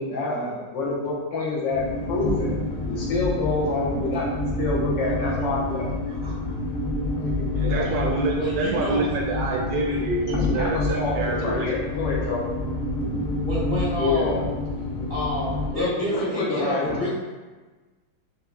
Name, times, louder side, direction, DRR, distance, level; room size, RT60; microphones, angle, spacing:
voice 1, 0.0-4.3 4.6-5.9 7.2-7.9 10.5-11.1 11.4-12.5 13.0-13.2 14.0-14.4 15.7-17.0, left 3 dB, 70° left, -5 dB, 1.6 m, -27 dB
sound 1, 1.7-15.7, left 2 dB, 90° left, 0.7 m, -28 dB
voice 2, 7.5-11.7, right 3 dB, 75° right, -1 dB, 1.1 m, -27 dB
voice 3, 8.4-9.1 13.4-14.4 15.1-17.2, equal, 50° left, -9 dB, 0.5 m, -29 dB
6.0 x 2.7 x 2.2 m, 1.3 s
omnidirectional pair, 2.2 m